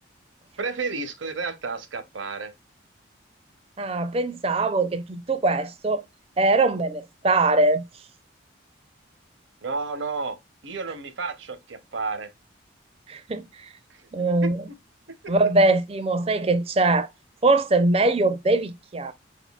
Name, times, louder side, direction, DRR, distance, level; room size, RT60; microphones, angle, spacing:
voice 1, 0.6-2.5 9.6-10.4 10.6-12.3 13.9-14.8 15.2-15.3, right 4 dB, 70° right, 0.7 m, -32 dB
voice 2, 3.8-6.0 6.4-7.8 13.1-13.4 14.1-14.6 15.3-17.1 17.4-19.1, right 2 dB, 30° right, 0.4 m, -22 dB
4.5 x 3.6 x 2.3 m
head